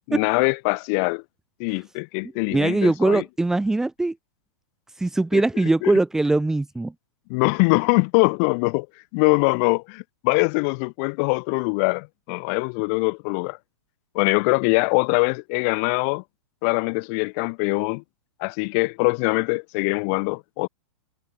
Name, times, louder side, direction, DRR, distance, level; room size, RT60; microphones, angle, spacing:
voice 1, 0.1-1.2 1.6-3.2 5.3-5.4 5.8-5.9 7.3-8.9 9.1-13.6 14.1-16.2 16.6-18.0 18.4-20.7, left 37 dB, 30° left, 5.7 m, -23 dB
voice 2, 2.5-4.2 5.0-6.9, right 2 dB, 5° right, 3.8 m, -21 dB
supercardioid pair, 180°, 15 cm